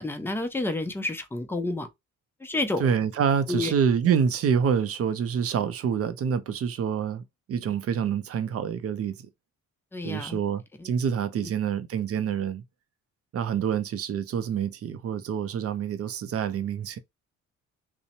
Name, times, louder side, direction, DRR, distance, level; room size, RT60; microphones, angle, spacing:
voice 1, 0.0-1.9 2.4-2.8 3.5-3.7 9.9-10.4 10.8-10.9 11.4-11.5, left 2 dB, 10° left, 0.5 m, -30 dB
voice 2, 2.8-7.2 7.5-9.1 10.0-12.6 13.3-17.0, right 7 dB, 50° right, 0.5 m, -27 dB
2.8 x 2.1 x 2.6 m
cardioid pair, 90°, 30 cm